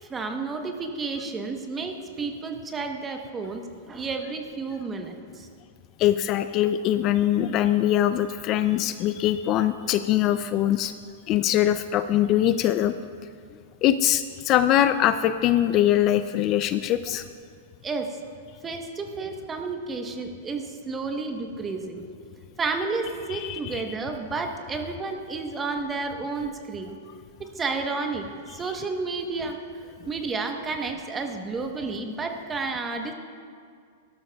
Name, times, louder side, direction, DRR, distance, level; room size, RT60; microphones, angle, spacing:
voice 1, 0.1-5.5 17.8-18.1 18.6-22.0 22.6-27.0 27.4-28.3 28.5-29.6 30.1-33.1, right 4 dB, 15° right, 4 dB, 1.0 m, -31 dB
voice 2, 6.0-10.9 11.3-12.9 13.8-17.2 23.3-23.8, left 12 dB, 35° left, 11 dB, 0.3 m, -22 dB
18.5 x 12.0 x 2.3 m, 2.2 s
hypercardioid pair, 145°, 0 cm